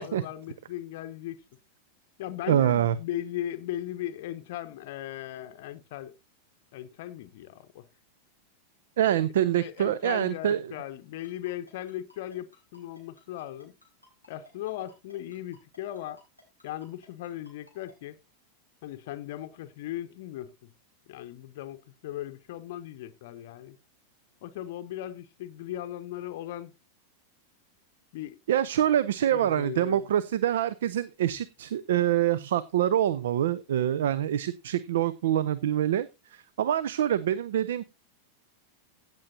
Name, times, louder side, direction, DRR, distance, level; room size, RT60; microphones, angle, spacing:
voice 1, 0.0-1.4 2.2-6.2 6.7-7.9 9.5-13.7 14.3-16.2 16.6-18.2 18.8-20.5 21.1-23.8 24.4-26.7 28.1-28.4 29.3-30.1, left 13 dB, 50° left, 0.7 m, -38 dB
voice 2, 2.5-2.9 9.0-10.6 28.5-37.8, right 11 dB, 60° right, 0.5 m, -25 dB
Ringtone, 11.2-17.9, left 1 dB, 90° right, 5.1 m, -57 dB
16.0 x 7.6 x 2.7 m
figure-of-eight pair, 90°, 0 cm